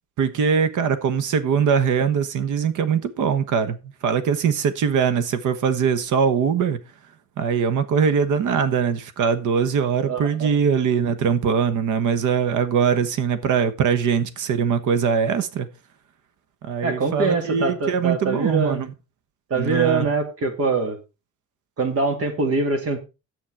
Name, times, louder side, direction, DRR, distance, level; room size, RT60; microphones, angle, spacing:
voice 1, 0.2-6.8 7.4-15.7 16.6-18.9 19.5-20.1, right 7 dB, 80° right, 1.3 m, -22 dB
voice 2, 10.1-10.5 16.8-18.8 19.5-21.0 21.8-23.0, right 3 dB, 50° right, 2.5 m, -23 dB
10.5 x 7.9 x 4.7 m
cardioid pair, 180°, 31 cm